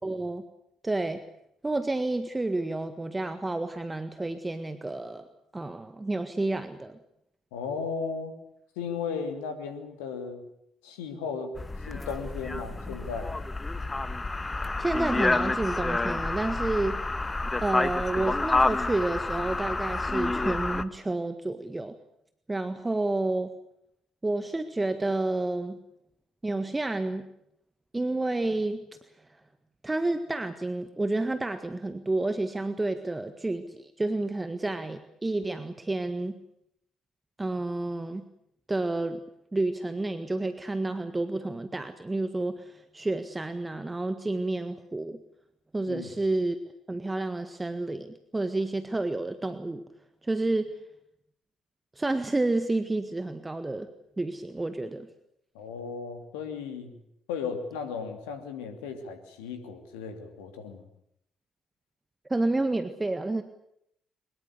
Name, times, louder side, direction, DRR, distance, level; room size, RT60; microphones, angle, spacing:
voice 1, 0.0-0.4 0.8-1.2 1.6-5.3 5.5-7.0 14.8-17.0 17.6-21.9 22.5-23.5 24.2-25.8 26.4-27.3 27.9-28.8 29.8-36.4 37.4-38.2 38.7-39.2 39.5-45.2 45.7-46.6 46.9-49.8 50.2-50.7 51.9-53.9 54.2-55.1 62.3-63.4, right 2 dB, 15° right, 10 dB, 1.7 m, -30 dB
voice 2, 7.5-8.3 8.8-10.4 10.8-11.5 11.9-13.3 45.9-46.1 55.5-56.9 57.3-60.9, left 5 dB, 70° left, 6 dB, 2.9 m, -35 dB
sound 1, 11.6-20.8, left 3 dB, 20° left, 1.4 m, -29 dB
23.5 x 21.0 x 8.4 m, 0.76 s
figure-of-eight pair, 45°, 0 cm